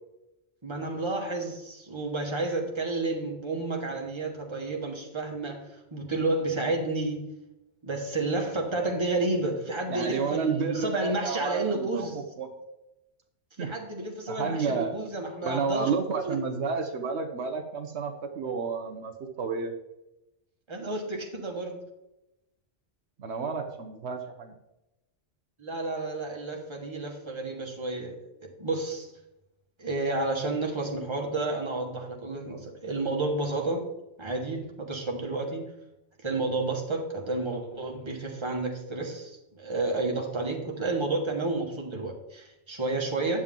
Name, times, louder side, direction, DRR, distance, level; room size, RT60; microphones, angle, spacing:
voice 1, 0.6-7.3 7.8-12.2 13.6-15.9 16.3-16.4 20.7-21.8 25.6-28.1 28.6-29.1 29.8-33.9 34.2-35.6 36.2-43.4, right 2 dB, 25° right, 0 dB, 1.5 m, -31 dB
voice 2, 9.9-12.5 13.6-13.7 14.3-15.0 15.4-19.7 23.2-24.6, right 5 dB, 75° right, 4 dB, 1.1 m, -31 dB
9.8 x 7.4 x 3.7 m, 0.92 s
omnidirectional pair, 1.2 m